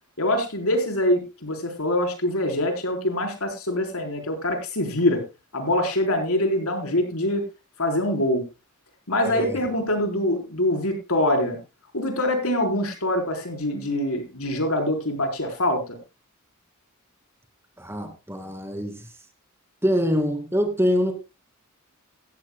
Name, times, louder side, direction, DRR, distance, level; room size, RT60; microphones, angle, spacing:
voice 1, 0.2-5.2 5.5-7.4 7.8-8.4 9.1-11.6 11.9-16.0, left 1 dB, 75° left, 4 dB, 4.1 m, -24 dB
voice 2, 9.2-9.6 17.8-19.0 19.8-21.1, equal, 10° right, 5 dB, 2.4 m, -24 dB
17.0 x 14.5 x 2.2 m, 0.26 s
head